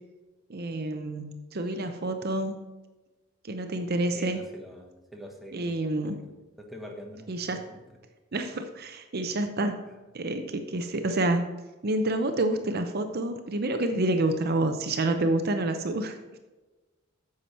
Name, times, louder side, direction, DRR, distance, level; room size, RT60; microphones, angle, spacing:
voice 1, 0.5-2.6 3.4-4.4 5.5-6.2 7.3-7.6 8.3-9.8 10.1-11.5 11.8-16.2, right 2 dB, 50° right, 7 dB, 0.7 m, -28 dB
voice 2, 4.1-5.7 6.0-6.2 6.6-7.8, equal, ahead, 0 dB, 1.3 m, -44 dB
9.6 x 7.0 x 4.3 m, 1.2 s
head